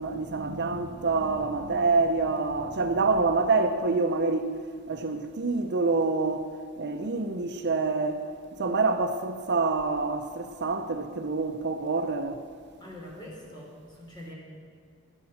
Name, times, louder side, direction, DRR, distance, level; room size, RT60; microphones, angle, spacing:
voice 1, 0.0-4.5 4.9-6.5 6.8-8.2 8.6-12.4, right 3 dB, 55° right, 6 dB, 0.7 m, -26 dB
voice 2, 12.8-14.3, left 1 dB, 20° left, -3 dB, 3.6 m, -44 dB
12.0 x 9.7 x 7.3 m, 2.1 s
head